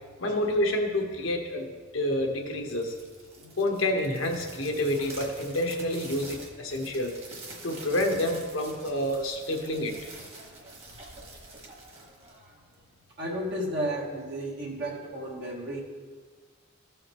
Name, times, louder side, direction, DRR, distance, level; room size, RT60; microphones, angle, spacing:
voice 1, 0.2-2.9 3.6-7.1 7.6-9.9, left 1 dB, 85° left, 2 dB, 1.1 m, -28 dB
sound 1, 2.5-12.9, right 2 dB, 30° right, 1.4 m, -46 dB
voice 2, 13.2-15.8, right 1 dB, 60° right, -3 dB, 1.3 m, -33 dB
14.5 x 5.0 x 3.0 m, 1.5 s
head